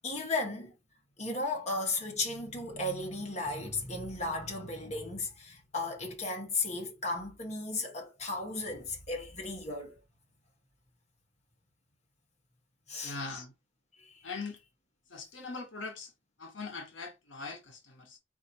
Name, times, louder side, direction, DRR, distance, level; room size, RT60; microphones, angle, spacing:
voice 1, 0.0-0.7 1.2-9.9 12.9-13.2 14.0-14.2, left 2 dB, 35° left, 1.3 m, -35 dB
voice 2, 13.0-13.5 14.2-14.6 15.1-16.1 16.4-18.2, left 3 dB, 75° left, 1.0 m, -41 dB
4.3 x 2.7 x 4.3 m
head